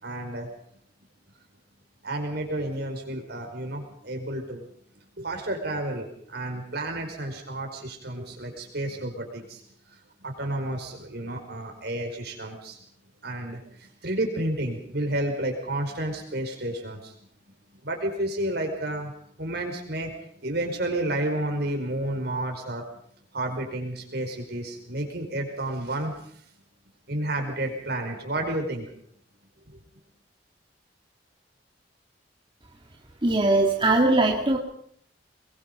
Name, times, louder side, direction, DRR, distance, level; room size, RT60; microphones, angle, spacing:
voice 1, 0.0-0.5 2.0-4.6 5.2-9.6 9.9-12.8 13.2-17.1 17.8-19.1 19.4-22.8 23.3-26.4 27.1-28.9 29.7-29.8, right 1 dB, 60° right, 3 dB, 5.2 m, -31 dB
voice 2, 33.2-34.6, right 2 dB, 30° right, 1 dB, 1.9 m, -20 dB
22.5 x 21.5 x 5.5 m, 0.64 s
head